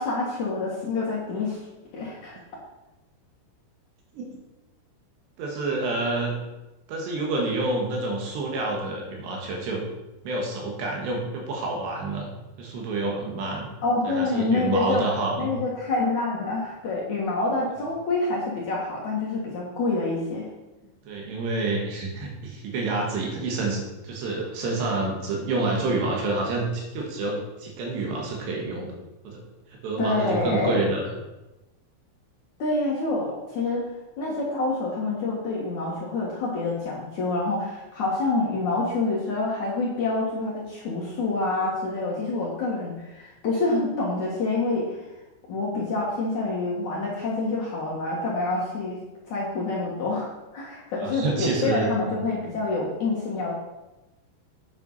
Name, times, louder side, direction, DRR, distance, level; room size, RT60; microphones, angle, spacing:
voice 1, 0.0-1.6 1.9-2.4 13.8-15.1 15.4-20.5 30.0-30.8 32.6-33.9 34.2-45.0 45.5-49.0 49.3-53.6, left 3 dB, 55° left, -4 dB, 2.5 m, -27 dB
voice 2, 5.4-6.3 6.9-9.8 10.3-12.3 12.6-13.7 14.0-15.5 21.1-28.9 29.2-29.4 29.7-31.1 51.0-52.2, right 2 dB, 70° right, 0 dB, 3.8 m, -28 dB
8.8 x 8.5 x 5.5 m, 1.0 s
omnidirectional pair, 5.4 m